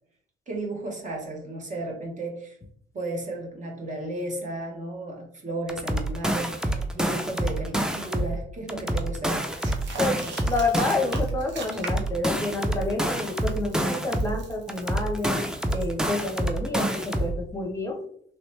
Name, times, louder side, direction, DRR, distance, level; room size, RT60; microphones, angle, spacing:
voice 1, 0.5-2.6 2.9-9.5, right 2 dB, 40° right, 1 dB, 1.0 m, -34 dB
sound 1, 5.7-8.4 8.7-11.4 11.7-14.4 14.7-17.4, right 1 dB, 5° right, 0.4 m, -27 dB
sound 2, 9.5-12.2 12.5-16.3, right 4 dB, 65° right, 0.9 m, -41 dB
voice 2, 10.5-15.4 15.7-18.0, left 2 dB, 15° left, 0 dB, 0.8 m, -29 dB
3.1 x 2.9 x 3.2 m, 0.64 s
cardioid pair, 90°, 20 cm